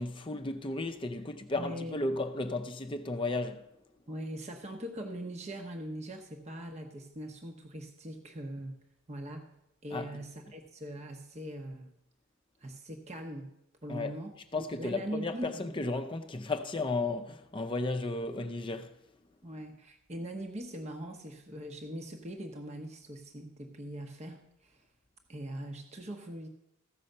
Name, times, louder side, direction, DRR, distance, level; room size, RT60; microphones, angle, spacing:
voice 1, 0.0-3.6 9.9-10.1 13.9-14.1 14.5-19.0, left 2 dB, 25° left, 0.5 m, -34 dB
voice 2, 1.6-2.0 4.1-8.7 9.1-9.5 9.8-11.9 12.6-13.5 13.8-15.8 19.4-24.9 25.3-26.5, right 1 dB, 30° right, 0.8 m, -41 dB
14.5 x 5.6 x 6.6 m
head